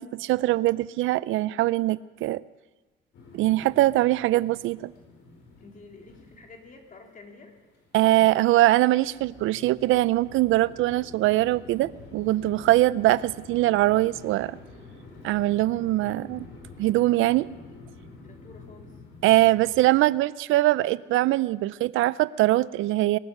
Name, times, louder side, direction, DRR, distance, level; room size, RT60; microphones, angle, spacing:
voice 1, 0.0-2.4 3.3-4.9 7.9-14.6 15.2-16.5 16.8-17.5 19.2-23.2, right 16 dB, 85° right, 19 dB, 0.4 m, -22 dB
sound 1, 3.1-19.9, left 3 dB, 80° left, 4.4 m, -48 dB
voice 2, 5.6-7.6 18.2-19.0, left 3 dB, 40° left, 2 dB, 3.2 m, -49 dB
23.5 x 9.4 x 6.6 m, 1.2 s
cardioid pair, 90°, 20 cm